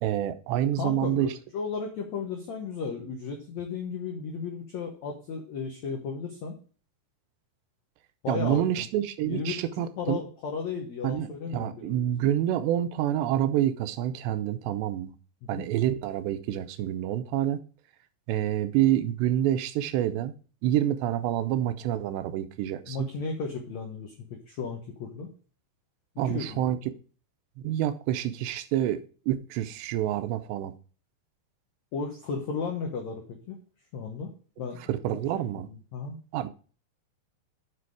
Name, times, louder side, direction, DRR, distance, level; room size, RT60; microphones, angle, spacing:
voice 1, 0.0-1.3 8.3-10.2 11.0-15.1 15.5-17.6 18.3-20.3 20.6-23.1 26.2-26.8 27.6-30.7 34.9-35.7 36.3-36.5, right 12 dB, 85° right, 2.9 m, -27 dB
voice 2, 0.8-6.6 8.2-8.7 9.2-9.5 10.0-12.3 15.4-15.6 22.9-25.3 26.2-26.6 31.9-33.6 33.9-34.3 34.6-34.8 35.3-36.2, left 5 dB, 80° left, 1.6 m, -35 dB
7.7 x 6.2 x 4.7 m
omnidirectional pair, 5.0 m